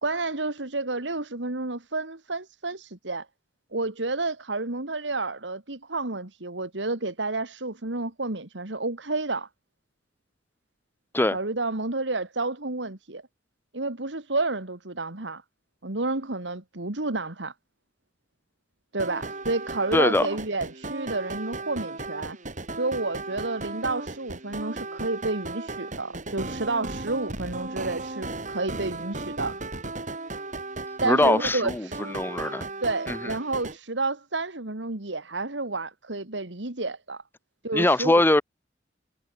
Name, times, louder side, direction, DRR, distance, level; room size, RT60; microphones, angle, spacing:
voice 1, 0.0-3.3 3.7-9.5 11.3-13.2 13.7-15.4 15.8-17.5 18.9-22.4 22.7-29.6 31.0-32.0 32.8-37.2 37.6-38.2, right 3 dB, 80° right, 2.4 m, -30 dB
sound 1, 19.0-33.8, right 2 dB, 45° right, 7.0 m, -36 dB
voice 2, 19.9-20.3 31.0-31.9 32.1-32.6 33.1-33.2 37.7-38.4, left 1 dB, 10° left, 0.8 m, -21 dB
head